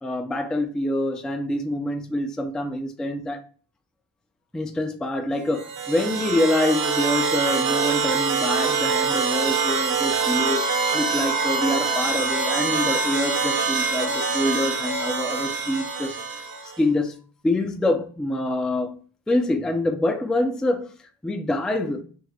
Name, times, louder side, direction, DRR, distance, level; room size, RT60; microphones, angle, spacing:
voice 1, 0.0-3.4 4.5-10.6 10.9-16.4 16.8-17.2 17.4-19.0 19.3-20.9 21.2-22.0, left 1 dB, ahead, 0.3 m, -25 dB
sound 1, 5.5-16.8, right 5 dB, 55° right, 0.9 m, -24 dB
3.6 x 2.1 x 3.1 m
cardioid pair, 75°, 42 cm